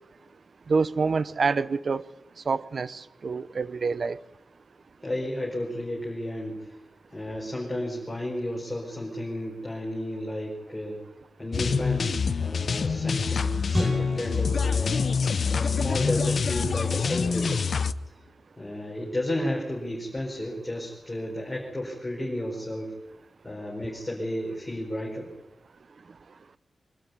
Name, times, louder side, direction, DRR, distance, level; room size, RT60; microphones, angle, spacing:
voice 1, 0.7-2.0 2.5-4.2, right 4 dB, 55° right, 0.7 m, -26 dB
voice 2, 5.0-6.8 7.1-11.0 11.4-15.0 15.5-17.7 18.6-22.9 23.4-25.3, left 1 dB, 10° left, 5.0 m, -32 dB
sound 1, 11.5-17.9, left 5 dB, 60° left, 0.7 m, -26 dB
sound 2, 13.7-16.1, left 1 dB, 25° right, 5.7 m, -34 dB
24.0 x 12.5 x 9.6 m
wide cardioid pair, 155°, 0 cm